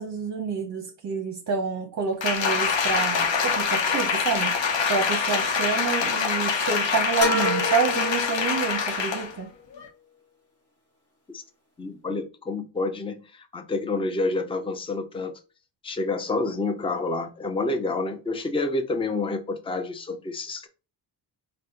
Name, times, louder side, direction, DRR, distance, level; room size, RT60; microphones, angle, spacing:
voice 1, 0.0-4.6 4.9-9.5, right 5 dB, 40° right, 0.6 m, -28 dB
Applause, 2.2-9.3 9.8-9.9, left 5 dB, 80° left, 0.9 m, -25 dB
sound 1, 7.2-9.0, left 1 dB, 35° left, 1.5 m, -28 dB
voice 2, 11.8-15.3 15.8-20.7, left 3 dB, 15° left, 0.5 m, -28 dB
4.0 x 2.2 x 3.7 m
cardioid pair, 110°, 44 cm